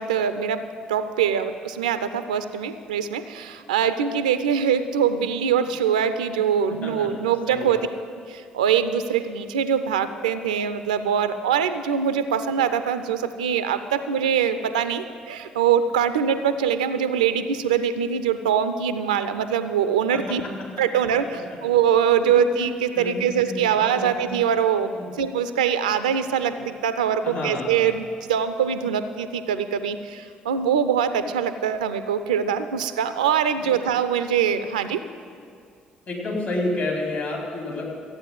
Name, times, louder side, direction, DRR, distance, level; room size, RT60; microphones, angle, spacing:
voice 1, 0.0-7.8 8.2-20.4 20.8-35.0, right 8 dB, 75° right, 11 dB, 0.5 m, -23 dB
voice 2, 6.7-7.8 20.1-21.0 21.3-21.4 22.2-22.7 22.9-24.1 24.9-25.1 27.2-27.9 33.6-33.7 36.1-37.9, left 2 dB, 50° left, -2 dB, 4.2 m, -31 dB
14.0 x 8.9 x 8.8 m, 2.3 s
figure-of-eight pair, 45°, 4 cm